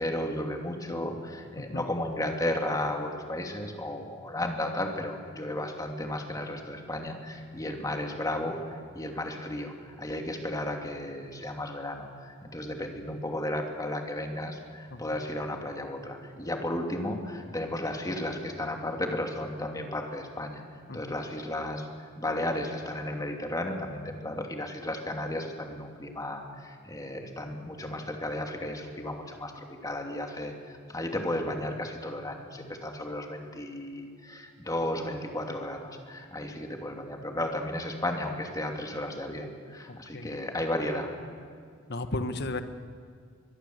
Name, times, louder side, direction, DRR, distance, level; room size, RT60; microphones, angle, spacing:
voice 1, 0.0-20.6 20.9-41.1, left 1 dB, 20° left, 3 dB, 2.8 m, -34 dB
voice 2, 39.9-40.4 41.9-42.6, left 2 dB, 55° left, 9 dB, 1.4 m, -34 dB
24.0 x 22.0 x 8.1 m, 2.2 s
head